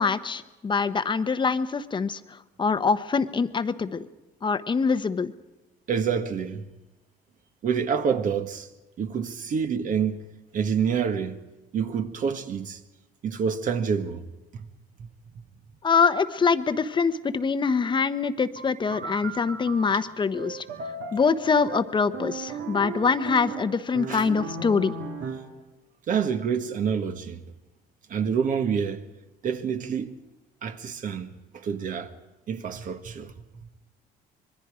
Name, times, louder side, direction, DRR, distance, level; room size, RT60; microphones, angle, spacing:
voice 1, 0.0-4.1 4.4-5.3 15.8-20.6 21.1-25.0, left 5 dB, 30° left, 1.0 m, -24 dB
voice 2, 5.9-6.7 7.6-8.7 9.0-11.4 11.7-12.8 13.2-14.2 14.5-14.7 24.1-24.3 26.1-27.4 28.1-29.0 29.4-30.1 30.6-32.1 32.5-33.3, right 7 dB, 50° right, 1.6 m, -27 dB
sound 1, 18.6-25.6, right 4 dB, 70° right, 2.1 m, -37 dB
25.5 x 22.0 x 5.0 m
cardioid pair, 110°, 17 cm